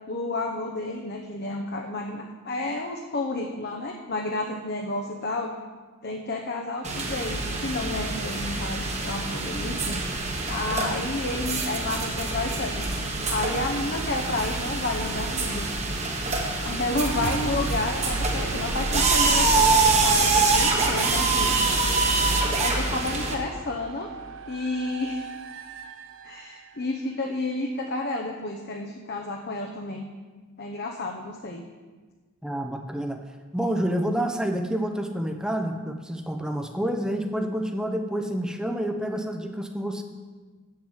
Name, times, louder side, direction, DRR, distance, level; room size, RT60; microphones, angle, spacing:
voice 1, 0.1-5.5 6.0-10.0 10.5-12.9 13.3-15.7 16.6-21.8 22.6-24.1 24.5-25.3 26.2-30.1 30.6-31.6, left 2 dB, 50° left, 1 dB, 0.8 m, -31 dB
sound 1, 6.8-23.3, right 3 dB, 35° right, 1.3 m, -25 dB
sound 2, 16.9-26.7, right 3 dB, 60° right, 0.6 m, -34 dB
voice 2, 32.4-33.2 33.5-40.0, right 1 dB, 5° right, 4 dB, 0.7 m, -28 dB
7.9 x 7.5 x 7.3 m, 1.4 s
head